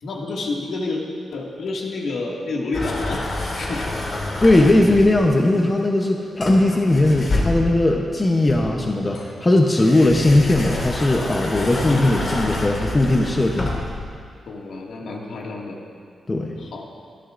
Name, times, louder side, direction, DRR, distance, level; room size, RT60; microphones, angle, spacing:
voice 1, 0.0-1.0 1.3-3.9 14.5-15.8 16.6-16.8, left 3 dB, 70° left, -2 dB, 2.0 m, -29 dB
sound 1, 2.7-5.3 6.4-7.9 8.4-14.0, left 2 dB, 40° left, 2.0 m, -28 dB
voice 2, 4.4-13.7 16.3-16.5, left 1 dB, 20° left, 1 dB, 0.8 m, -18 dB
25.0 x 11.5 x 2.6 m, 2.2 s
wide cardioid pair, 170°, 0 cm